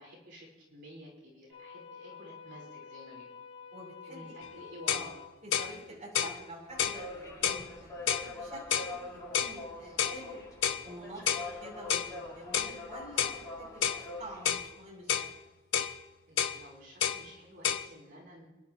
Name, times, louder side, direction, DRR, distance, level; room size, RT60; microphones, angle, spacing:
voice 1, 0.0-3.4 4.1-5.1 16.3-18.5, equal, 55° right, -4 dB, 3.9 m, -51 dB
sound 1, 1.5-5.3, left 6 dB, 85° left, 3.1 m, -49 dB
voice 2, 3.7-4.6 4.9-5.1 5.4-10.4 10.8-15.3, right 1 dB, 35° right, -4 dB, 4.1 m, -48 dB
sound 2, 4.4-4.5 4.9-5.1 5.5-5.7 6.1-6.4 6.8-7.0 7.4-7.6 8.1-8.3 8.7-8.9 9.3-9.6 10.0-10.2 10.6-10.8 11.3-11.5 11.9-12.1 12.5-12.7 13.2-13.4 13.8-14.0 14.5-14.7 15.1-15.3 15.7-15.9 16.4-16.6 17.0-17.2 17.6-17.9, left 9 dB, 60° left, 0.7 m, -29 dB
sound 3, 6.7-14.6, left 2 dB, 15° left, 3.8 m, -44 dB
28.5 x 10.5 x 3.0 m, 1.2 s
head